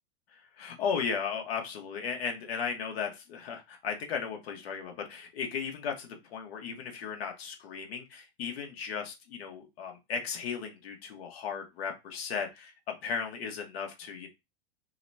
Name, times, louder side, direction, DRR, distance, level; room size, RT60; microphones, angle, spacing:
voice 1, 0.3-14.3, left 6 dB, 65° left, 3 dB, 1.3 m, -36 dB
5.4 x 2.2 x 2.7 m, 0.23 s
hypercardioid pair, 120°, 33 cm